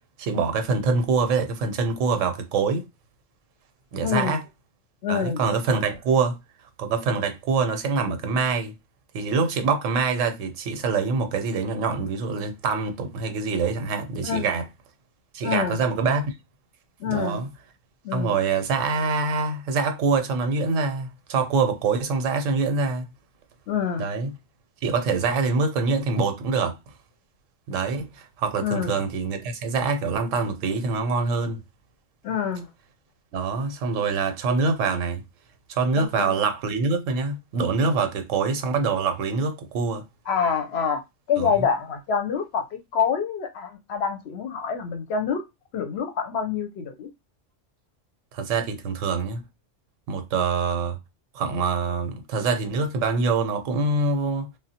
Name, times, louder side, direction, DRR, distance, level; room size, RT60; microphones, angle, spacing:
voice 1, 0.2-2.9 3.9-4.4 5.1-6.4 6.8-8.7 9.1-14.6 15.3-16.4 17.1-17.5 18.1-23.1 24.0-24.3 24.8-26.8 27.7-31.6 33.3-35.2 35.7-40.0 41.4-41.7 48.3-49.4 50.1-51.0 51.3-54.5, right 4 dB, 85° right, 1.0 m, -25 dB
voice 2, 4.0-4.4 5.0-5.4 14.2-14.6 15.4-15.8 17.0-17.4 18.0-18.4 23.7-24.1 28.6-28.9 32.2-32.7 36.2-36.3 40.3-41.0 41.3-45.4 45.7-47.1, left 7 dB, 65° left, 0.8 m, -26 dB
3.3 x 2.1 x 2.7 m
omnidirectional pair, 1.3 m